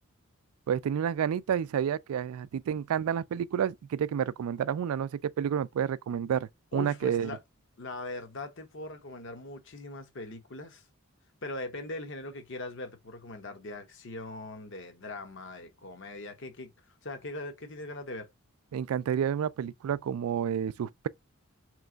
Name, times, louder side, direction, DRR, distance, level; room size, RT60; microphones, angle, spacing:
voice 1, 0.7-7.3 18.7-21.1, right 8 dB, 75° right, 0.3 m, -30 dB
voice 2, 6.7-7.4 7.8-10.8 11.4-16.7 17.0-18.3, left 2 dB, 55° left, 0.9 m, -40 dB
3.4 x 3.1 x 3.8 m
head